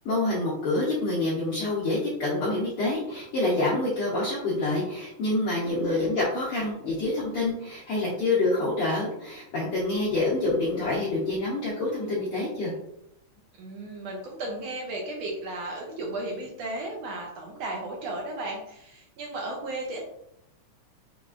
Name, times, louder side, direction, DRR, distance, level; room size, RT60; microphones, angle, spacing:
voice 1, 0.0-12.7, left 2 dB, 65° left, -6 dB, 1.4 m, -27 dB
voice 2, 5.6-6.1 13.6-20.0, right 2 dB, 75° right, -1 dB, 1.6 m, -35 dB
5.9 x 3.1 x 2.5 m, 0.79 s
omnidirectional pair, 3.4 m